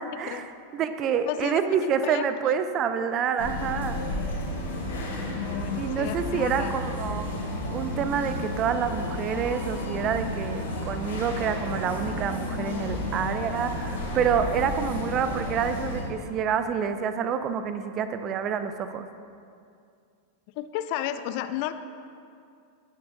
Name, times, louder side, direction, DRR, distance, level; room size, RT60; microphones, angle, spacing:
voice 1, 0.0-4.0 5.8-7.3 7.7-19.1, right 7 dB, 30° right, 10 dB, 0.6 m, -28 dB
voice 2, 1.3-2.3 5.3-6.7 20.6-21.7, left 12 dB, 45° left, 11 dB, 0.4 m, -33 dB
sound 1, 3.4-16.0, left 1 dB, 65° left, 2.1 m, -32 dB
16.5 x 6.9 x 2.6 m, 2.4 s
figure-of-eight pair, 90°, 0 cm